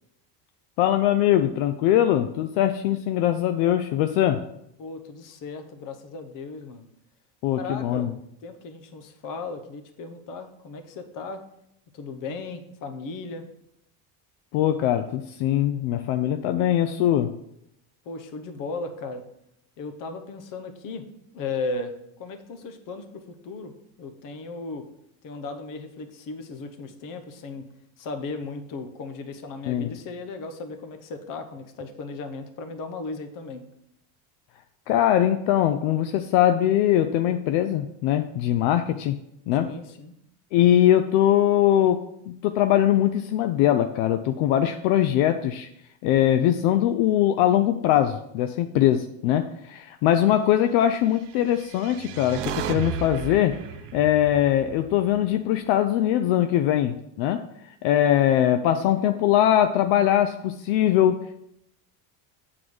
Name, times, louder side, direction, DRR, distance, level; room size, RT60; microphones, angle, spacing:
voice 1, 0.8-4.4 7.4-8.1 14.5-17.3 29.7-29.9 34.9-39.2 39.5-39.7 40.5-45.7 46.0-53.6 53.9-57.4 57.8-61.4, left 11 dB, 70° left, 8 dB, 0.6 m, -21 dB
voice 2, 4.8-6.9 7.5-8.1 8.4-11.4 11.9-13.5 18.0-19.2 19.8-21.1 21.3-21.9 22.2-24.9 25.2-27.7 28.0-33.6 39.6-40.1, left 3 dB, 45° left, 7 dB, 0.9 m, -36 dB
sound 1, 51.3-55.7, right 10 dB, 60° right, 0.7 m, -35 dB
7.8 x 3.8 x 4.9 m, 0.78 s
cardioid pair, 145°, 46 cm